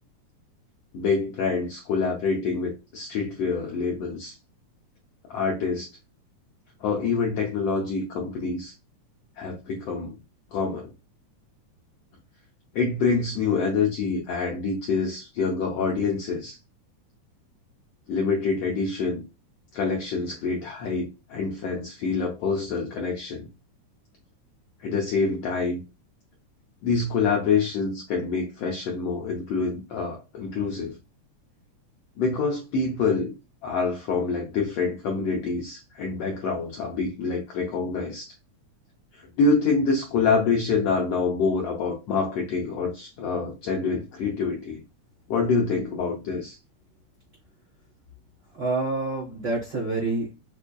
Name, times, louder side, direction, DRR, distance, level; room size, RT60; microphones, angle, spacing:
voice 1, 0.9-4.3 5.3-5.9 6.8-8.7 9.4-10.2 10.5-10.9 12.7-16.6 18.1-19.2 19.7-23.5 24.8-25.8 26.8-31.0 32.2-33.3 33.6-38.3 39.1-44.8 45.3-46.6, left 4 dB, 80° left, 0 dB, 1.4 m, -26 dB
voice 2, 48.5-50.3, right 2 dB, 85° right, -4 dB, 0.8 m, -27 dB
5.3 x 2.5 x 2.2 m, 0.28 s
omnidirectional pair, 3.6 m